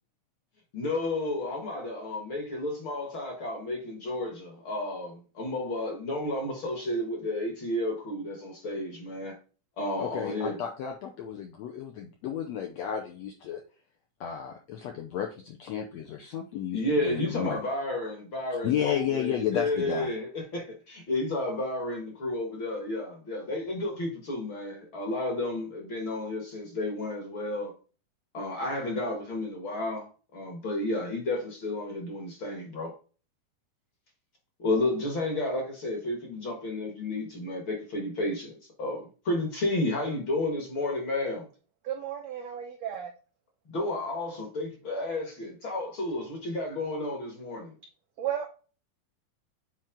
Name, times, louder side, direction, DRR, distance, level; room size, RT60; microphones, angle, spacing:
voice 1, 0.7-9.4 9.8-10.6 16.7-27.7 28.3-32.9 34.6-41.5 43.7-47.7, left 1 dB, 45° left, 1.7 m, -32 dB
voice 2, 10.0-13.6 14.2-17.6 18.6-20.1, left 9 dB, 80° left, 1.6 m, -32 dB
voice 3, 41.8-43.1 48.2-48.5, right 10 dB, 80° right, 1.5 m, -33 dB
7.4 x 4.5 x 3.7 m
omnidirectional pair, 4.0 m